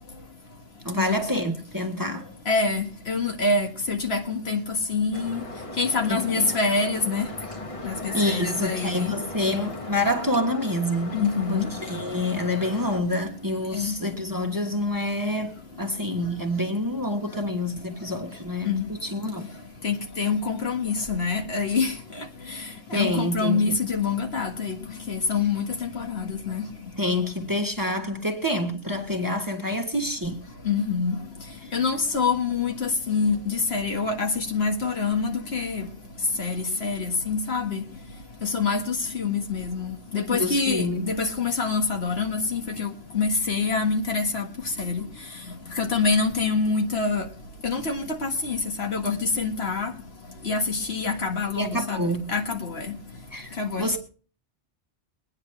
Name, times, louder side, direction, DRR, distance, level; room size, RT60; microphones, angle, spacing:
voice 1, 0.8-2.3 6.1-6.5 8.1-11.2 11.5-19.5 22.9-23.8 27.0-30.4 31.6-31.7 40.3-41.1 51.6-52.3 53.3-54.0, left 1 dB, 20° right, 1.3 m, -27 dB
voice 2, 2.5-4.6 4.9-5.4 5.8-7.3 7.8-9.1 11.1-11.7 13.7-13.9 18.6-18.9 19.8-21.9 22.9-24.8 25.1-26.6 30.7-31.2 31.7-35.9 36.4-37.8 38.5-42.9 43.1-44.5 44.8-45.0 45.8-47.3 47.6-49.9 50.5-52.9 53.6-54.0, left 4 dB, 65° left, 1.9 m, -26 dB
sound 1, 5.1-13.0, left 2 dB, 30° left, 1.2 m, -37 dB
22.5 x 9.7 x 3.3 m
omnidirectional pair, 1.1 m